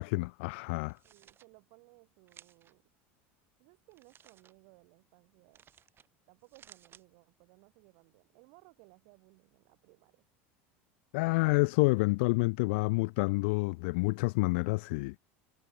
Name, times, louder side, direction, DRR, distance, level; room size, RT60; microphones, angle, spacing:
voice 1, 0.0-1.0 11.1-15.1, left 26 dB, 75° left, 0.5 m, -28 dB
sound 1, 0.8-1.5 2.3-2.7 3.9-4.5 5.5-6.1 6.4-7.0, right 9 dB, 35° right, 6.3 m, -58 dB
voice 2, 1.0-2.9 3.6-5.6 6.3-10.2, right 40 dB or more, 70° right, 3.5 m, -61 dB
supercardioid pair, 110°, 6 cm